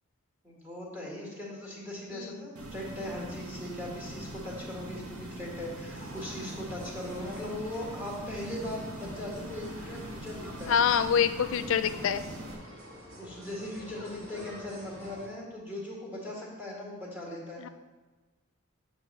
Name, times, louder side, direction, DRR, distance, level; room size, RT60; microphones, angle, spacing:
voice 1, 0.4-11.0 13.2-17.6, left 1 dB, 10° right, -4 dB, 1.7 m, -39 dB
sound 1, 2.6-12.6, right 1 dB, 85° right, 1.1 m, -42 dB
sound 2, 5.9-15.3, equal, 65° right, 1.8 m, -48 dB
voice 2, 10.7-12.2 17.6-17.7, left 7 dB, 60° left, 12 dB, 0.3 m, -26 dB
8.1 x 3.2 x 6.0 m, 1.3 s
head